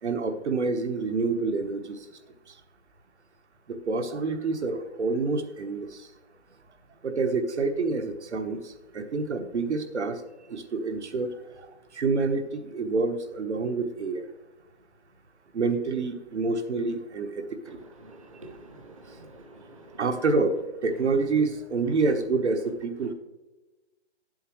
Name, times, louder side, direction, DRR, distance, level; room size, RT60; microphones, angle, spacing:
voice 1, 0.0-2.1 2.5-2.6 3.7-6.1 7.0-10.2 10.5-14.3 15.5-17.8 20.0-23.1, right 3 dB, 75° right, 7 dB, 1.2 m, -28 dB
voice 2, 18.0-20.0, right 2 dB, 30° right, 2 dB, 0.6 m, -48 dB
9.6 x 7.8 x 3.1 m, 1.1 s
hypercardioid pair, 180°, 34 cm